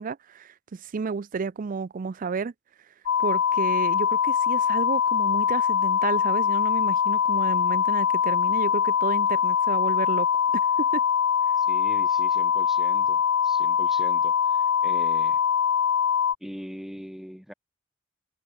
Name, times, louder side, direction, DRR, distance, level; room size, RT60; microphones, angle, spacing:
voice 1, 0.0-2.5 3.2-10.4 10.8-11.0, right 5 dB, 45° right, 0.4 m, -31 dB
sound 1, 3.1-16.3, left 8 dB, 70° left, 0.5 m, -23 dB
voice 2, 11.6-15.4 16.4-17.5, equal, ahead, 1.3 m, -41 dB
head